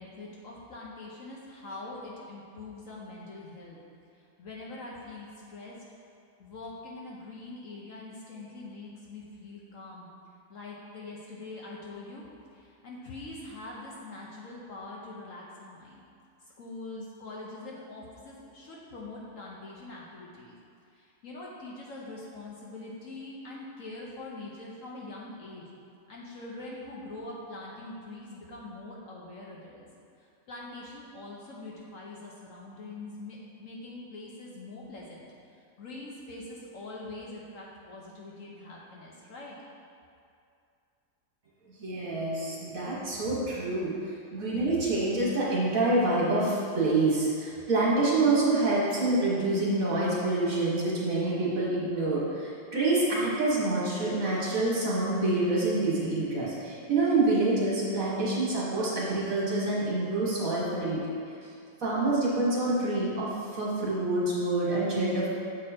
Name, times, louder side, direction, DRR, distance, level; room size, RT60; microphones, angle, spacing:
voice 1, 0.0-3.8 4.4-5.8 6.4-10.1 10.5-12.2 12.5-16.0 16.4-20.5 20.9-25.7 26.1-29.8 30.2-39.6, left 2 dB, 60° left, -4 dB, 1.1 m, -43 dB
voice 2, 41.8-43.9 44.3-61.0 61.8-65.3, right 2 dB, 55° right, -6 dB, 1.8 m, -27 dB
7.3 x 4.8 x 4.3 m, 2.4 s
omnidirectional pair, 1.8 m